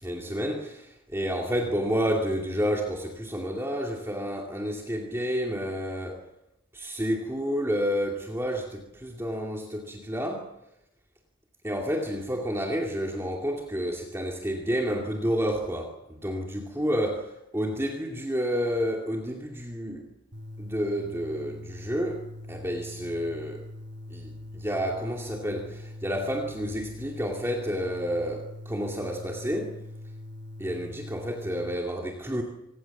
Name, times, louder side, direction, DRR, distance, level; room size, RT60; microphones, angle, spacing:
voice 1, 0.0-6.2 6.7-10.5 11.6-20.0 20.6-22.2 22.5-23.6 24.1-29.7 30.6-32.4, equal, 15° right, 0 dB, 2.6 m, -30 dB
sound 1, 20.3-31.7, left 1 dB, 60° right, 2.8 m, -42 dB
26.5 x 19.0 x 7.3 m, 0.84 s
head